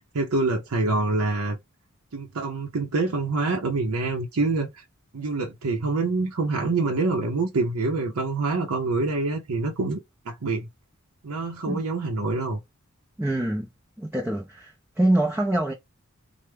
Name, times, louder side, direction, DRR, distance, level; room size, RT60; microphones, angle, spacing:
voice 1, 0.0-1.6 2.1-4.7 5.1-10.0 10.3-10.7 11.2-12.6, right 3 dB, 85° right, 0.7 m, -26 dB
voice 2, 13.2-13.7 14.0-15.7, right 1 dB, 10° right, 0.5 m, -25 dB
3.3 x 2.1 x 3.2 m
head